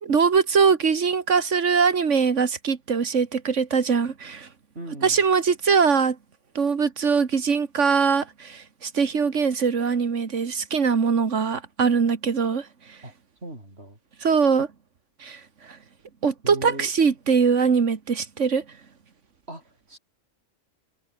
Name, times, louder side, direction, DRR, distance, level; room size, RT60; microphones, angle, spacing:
voice 1, 0.0-4.5 5.0-6.2 6.6-13.0 14.2-14.7 15.2-15.8 16.2-18.6, right 5 dB, 85° right, 2.0 m, -22 dB
voice 2, 4.8-5.2 13.0-13.1 13.4-14.0 16.4-16.9 19.5-20.0, right 1 dB, 60° right, 7.0 m, -38 dB
omnidirectional pair, 1.2 m